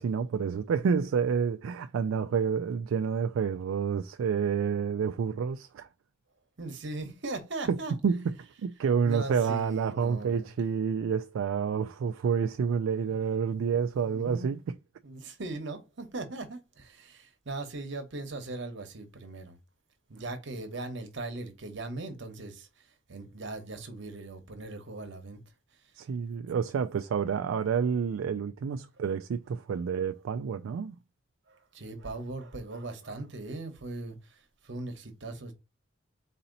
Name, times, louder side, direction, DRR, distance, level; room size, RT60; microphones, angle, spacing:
voice 1, 0.0-5.9 7.7-8.3 8.6-14.7 26.0-31.0, right 6 dB, 80° right, 0.3 m, -29 dB
voice 2, 6.6-8.0 9.0-10.5 13.1-13.2 14.0-14.5 15.0-19.6 20.1-25.4 31.5-35.5, right 2 dB, 65° right, 1.0 m, -39 dB
4.1 x 2.8 x 3.9 m
head